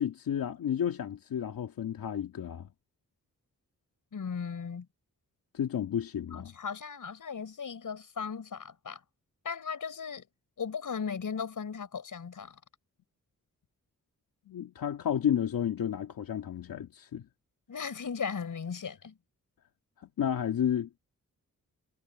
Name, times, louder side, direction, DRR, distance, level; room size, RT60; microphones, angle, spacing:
voice 1, 0.0-2.7 5.5-6.6 14.5-17.3 20.0-20.9, left 9 dB, 85° left, 2.2 m, -31 dB
voice 2, 4.1-4.9 6.3-9.0 9.4-10.3 10.6-12.6 17.7-19.2, left 6 dB, 70° left, 5.7 m, -37 dB
cardioid pair, 60°, 33 cm